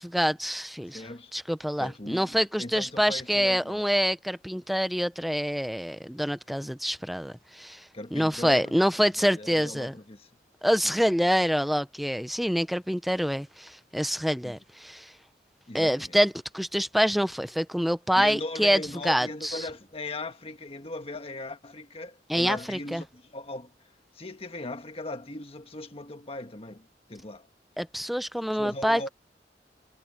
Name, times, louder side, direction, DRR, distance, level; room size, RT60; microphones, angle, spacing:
voice 1, 0.0-1.1 1.3-7.8 8.1-9.9 10.6-15.1 15.7-19.6 22.3-23.0 27.8-29.1, equal, ahead, 0.8 m, -26 dB
voice 2, 0.9-1.3 1.8-3.9 7.9-8.7 9.2-10.3 10.8-11.0 14.4-14.6 15.7-16.1 18.1-23.7 24.1-27.5 28.5-29.1, left 2 dB, 35° left, 1.5 m, -39 dB
head